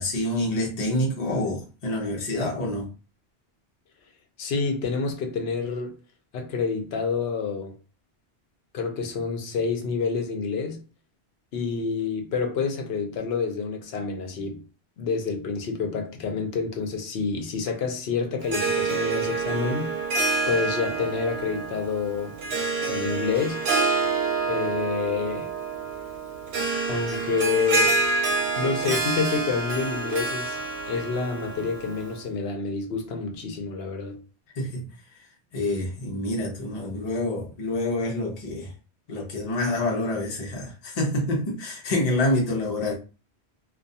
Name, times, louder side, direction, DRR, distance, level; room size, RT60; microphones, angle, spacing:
voice 1, 0.0-2.9 34.6-34.8 35.5-38.7 39.1-42.9, left 1 dB, 40° left, 0.7 m, -27 dB
voice 2, 4.4-6.0 6.3-7.7 8.7-10.8 11.5-14.6 15.0-19.9 20.5-22.4 22.9-23.6 24.5-25.5 26.9-28.0 28.6-30.6 30.9-34.2, left 5 dB, 70° left, 0.8 m, -28 dB
Harp, 18.4-32.2, right 3 dB, 75° right, 0.8 m, -27 dB
2.3 x 2.2 x 2.7 m
omnidirectional pair, 1.1 m